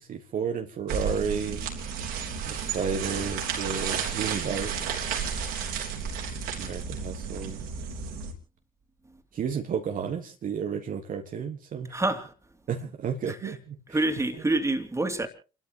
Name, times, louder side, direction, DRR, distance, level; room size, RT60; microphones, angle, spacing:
voice 1, 0.1-1.6 2.5-4.9 6.6-7.6 9.3-11.9 12.7-14.0, right 6 dB, 55° right, 1.6 m, -32 dB
sound 1, 0.9-8.3, right 6 dB, 70° right, 3.6 m, -32 dB
voice 2, 11.9-12.3 13.3-13.4 13.9-15.3, right 2 dB, 15° right, 2.8 m, -27 dB
30.0 x 12.5 x 3.0 m
hypercardioid pair, 45°, 17 cm